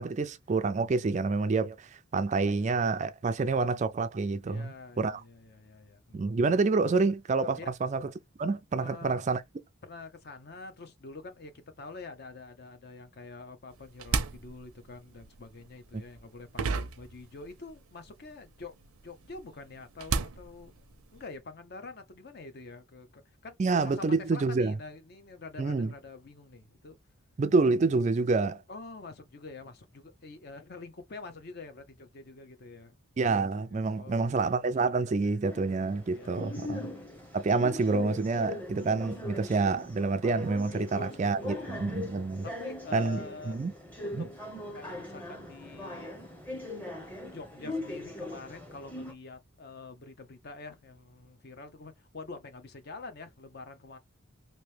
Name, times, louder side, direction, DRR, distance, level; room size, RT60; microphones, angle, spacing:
voice 1, 0.0-5.2 6.1-8.1 8.4-9.4 15.9-16.0 23.6-24.7 25.6-25.9 27.4-28.6 33.2-36.9 37.3-42.4 42.9-43.7 44.1-44.3, right 3 dB, 35° right, 0.3 m, -28 dB
voice 2, 4.4-6.3 7.5-7.7 8.8-9.2 9.8-11.5 11.8-18.7 19.0-20.7 21.1-23.6 23.8-27.0 28.7-32.9 33.6-34.3 35.2-35.4 36.1-37.0 40.7-42.0 42.4-43.6 44.0-44.3 44.7-46.2 47.3-54.0, left 3 dB, 45° left, 0.6 m, -46 dB
sound 1, 13.7-17.8 18.1-21.3, right 5 dB, 85° right, 0.5 m, -35 dB
sound 2, 35.4-49.1, left 1 dB, 10° left, 0.8 m, -40 dB
3.0 x 2.7 x 3.2 m
head